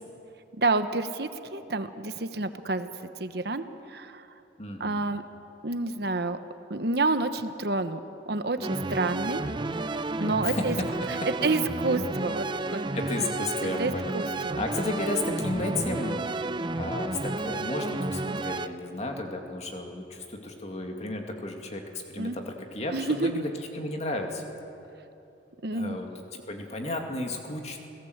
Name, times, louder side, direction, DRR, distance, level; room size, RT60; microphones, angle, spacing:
voice 1, 0.6-2.9 3.2-4.3 4.8-5.2 5.6-6.4 6.7-8.0 8.3-9.4 10.2-10.7 11.1-11.2 11.4-12.8 13.8-14.6 22.2-22.4 22.9-23.4 25.6-26.0, right 3 dB, 60° right, 10 dB, 1.1 m, -29 dB
voice 2, 4.6-5.0 8.6-8.8 10.4-11.3 12.7-14.1 14.5-16.2 16.8-24.4 25.7-26.1 26.5-27.8, left 2 dB, 35° left, 3 dB, 2.4 m, -33 dB
sound 1, 8.6-18.7, right 2 dB, 25° right, 0.6 m, -31 dB
29.0 x 17.5 x 8.0 m, 2.8 s
head